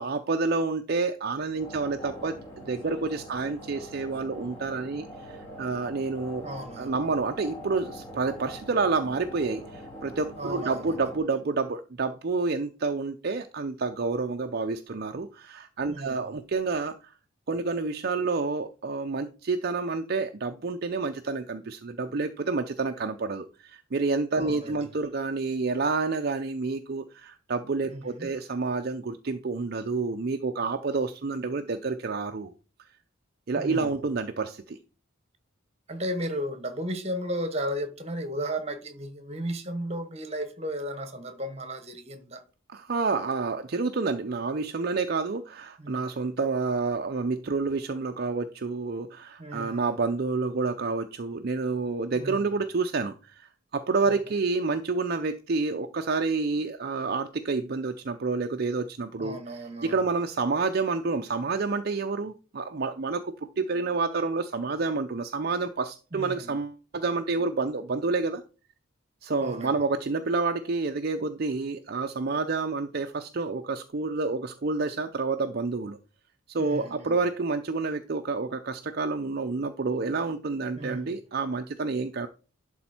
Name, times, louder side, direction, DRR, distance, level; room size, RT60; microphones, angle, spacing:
voice 1, 0.0-6.4 6.8-17.1 17.5-32.5 33.5-34.8 42.7-59.4 59.8-68.4 69.2-76.0 76.5-82.3, right 4 dB, 50° right, 0.5 m, -29 dB
sound 1, 1.6-11.2, equal, 25° left, 2.9 m, -43 dB
voice 2, 6.4-7.0 10.4-10.9 15.9-16.3 24.4-24.9 27.9-28.3 33.5-34.0 35.9-42.4 45.8-46.1 49.4-50.0 52.1-52.5 54.1-54.2 59.2-60.0 66.1-66.6 69.4-69.7 76.6-77.2 80.8-81.2, equal, 30° right, 1.3 m, -35 dB
11.5 x 4.2 x 4.4 m
head